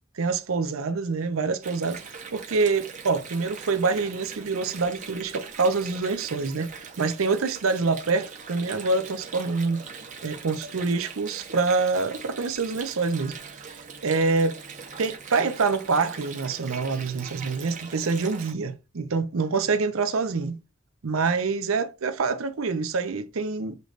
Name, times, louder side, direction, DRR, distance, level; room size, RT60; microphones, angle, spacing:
voice 1, 0.1-2.0 2.3-9.8 10.2-13.4 14.0-14.6 15.0-20.6 21.0-23.8, right 4 dB, 85° right, 0.6 m, -26 dB
Water, 1.6-18.5, right 5 dB, 35° right, 0.8 m, -41 dB
6.6 x 3.2 x 2.5 m
head